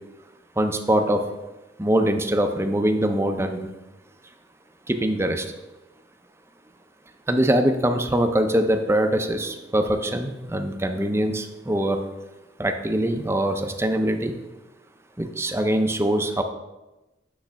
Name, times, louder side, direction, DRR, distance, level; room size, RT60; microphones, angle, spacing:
voice 1, 0.6-1.2 1.8-3.7 4.9-5.5 7.3-12.0 12.6-14.4 15.2-16.4, right 1 dB, 15° right, 6 dB, 0.5 m, -23 dB
8.2 x 3.2 x 5.7 m, 1.0 s
head